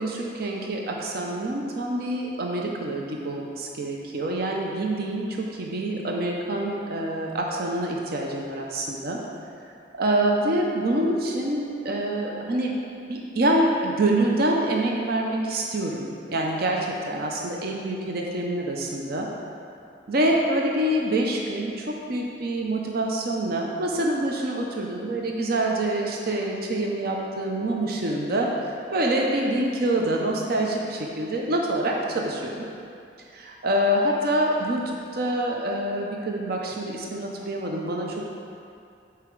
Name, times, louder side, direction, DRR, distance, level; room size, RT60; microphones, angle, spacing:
voice 1, 0.0-9.2 10.0-12.8 13.1-19.3 20.1-28.5 28.9-32.7 33.3-38.3, right 1 dB, 55° right, 0 dB, 0.6 m, -26 dB
7.9 x 4.7 x 4.6 m, 2.5 s
head